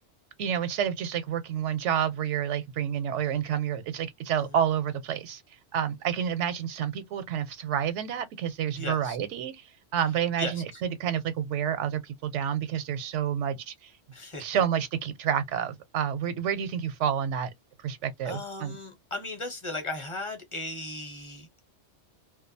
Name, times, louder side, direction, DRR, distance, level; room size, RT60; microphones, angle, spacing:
voice 1, 0.4-5.4 5.7-9.6 9.9-13.9 14.4-17.5 17.8-18.8, right 9 dB, 90° right, 0.9 m, -29 dB
voice 2, 8.8-9.2 10.4-10.8 14.1-14.6 18.2-21.5, left 2 dB, 30° left, 0.8 m, -36 dB
2.4 x 2.3 x 2.5 m
omnidirectional pair, 1.2 m